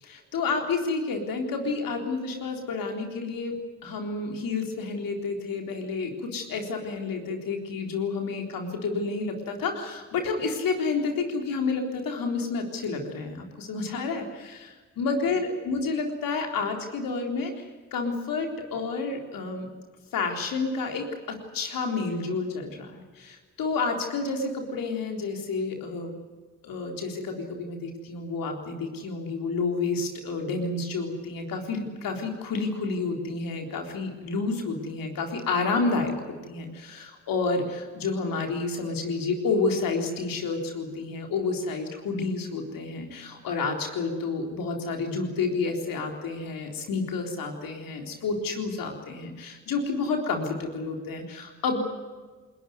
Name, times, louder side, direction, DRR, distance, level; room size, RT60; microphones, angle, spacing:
voice 1, 0.0-3.6 3.8-19.7 20.1-26.2 26.6-36.1 36.5-51.8, left 4 dB, 85° left, 3 dB, 3.9 m, -30 dB
21.0 x 20.5 x 9.5 m, 1.4 s
supercardioid pair, 45°, 33 cm